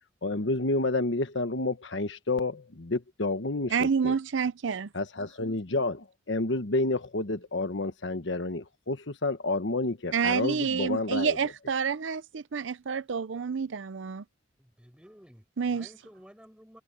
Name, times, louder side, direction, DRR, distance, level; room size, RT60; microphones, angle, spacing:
voice 1, 0.2-4.1 4.9-11.4, left 2 dB, 80° left, 1.3 m, -30 dB
voice 2, 3.7-4.9 10.1-14.2 15.6-15.9, right 6 dB, 90° right, 0.6 m, -28 dB
voice 3, 14.6-16.8, equal, 5° right, 5.7 m, -53 dB
head